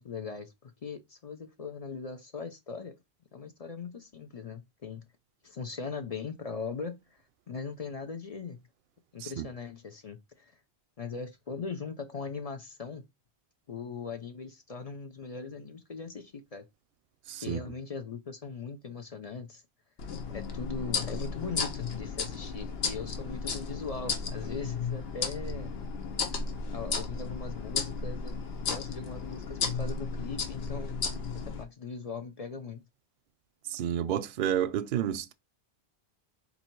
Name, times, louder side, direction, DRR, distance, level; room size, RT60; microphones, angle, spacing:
voice 1, 0.0-2.9 3.3-5.0 5.4-8.6 9.1-10.6 11.0-13.0 13.7-16.7 17.4-19.6 20.3-25.7 26.7-28.4 28.7-31.0 31.3-32.8, left 5 dB, 40° left, 0.6 m, -40 dB
voice 2, 17.3-17.6 33.7-35.3, right 10 dB, 60° right, 0.6 m, -30 dB
sound 1, 20.0-31.6, left 5 dB, 70° left, 1.0 m, -34 dB
4.1 x 2.8 x 4.5 m
omnidirectional pair, 1.1 m